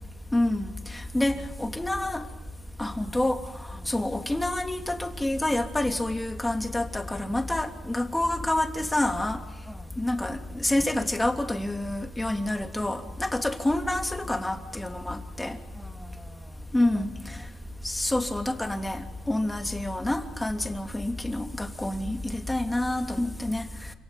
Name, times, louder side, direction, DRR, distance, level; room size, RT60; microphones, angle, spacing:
voice 1, 0.3-2.2 2.8-3.4 3.9-9.4 10.0-15.6 16.7-17.1 17.8-23.7, left 1 dB, 10° left, 5 dB, 3.0 m, -28 dB
voice 2, 1.8-2.1 3.7-4.0 9.6-10.0 15.7-17.5, equal, 5° right, 3 dB, 2.2 m, -49 dB
29.0 x 18.0 x 9.2 m, 1.1 s
cardioid pair, 90°, 0 cm